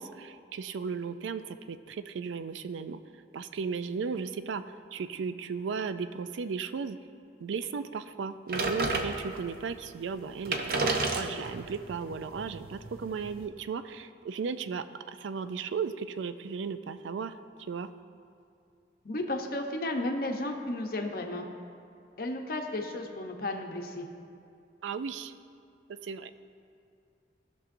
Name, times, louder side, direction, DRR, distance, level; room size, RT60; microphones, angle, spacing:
voice 1, 0.0-3.0 3.3-4.6 4.9-7.0 7.4-10.8 11.1-17.3 17.7-17.9 24.8-25.3 26.0-26.3, right 5 dB, 90° right, 12 dB, 0.4 m, -35 dB
sound 1, 8.5-9.6 10.1-10.2 10.4-13.5, right 3 dB, 50° right, 0.7 m, -32 dB
voice 2, 19.0-21.5 22.2-24.0, left 1 dB, 50° left, 3 dB, 0.7 m, -33 dB
17.0 x 6.1 x 2.6 m, 2.5 s
head